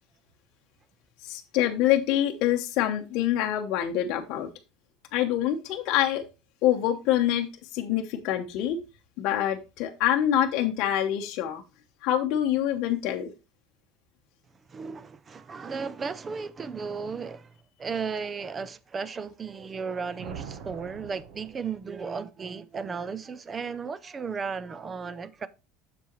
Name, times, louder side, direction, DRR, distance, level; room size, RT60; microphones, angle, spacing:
voice 1, 1.2-4.5 5.1-6.2 6.6-7.5 7.7-8.8 9.2-11.6 12.0-13.3, left 11 dB, 45° left, 0.8 m, -25 dB
voice 2, 14.7-17.5 17.8-25.5, right 5 dB, 15° right, 0.4 m, -35 dB
sound 1, 20.2-22.2, right 7 dB, 55° right, 1.0 m, -43 dB
7.3 x 6.9 x 3.0 m
cardioid pair, 180°, 0 cm